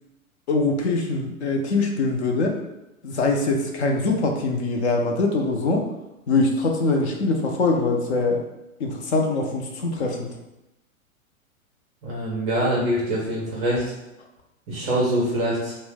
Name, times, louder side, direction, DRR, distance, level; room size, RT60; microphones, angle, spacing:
voice 1, 0.5-2.6 3.0-5.9 6.3-8.4 8.8-10.3, left 3 dB, 55° left, 1 dB, 0.6 m, -23 dB
voice 2, 12.0-13.9 14.7-15.7, equal, 15° right, -5 dB, 0.4 m, -24 dB
2.5 x 2.1 x 3.5 m, 0.94 s
figure-of-eight pair, 105°, 42 cm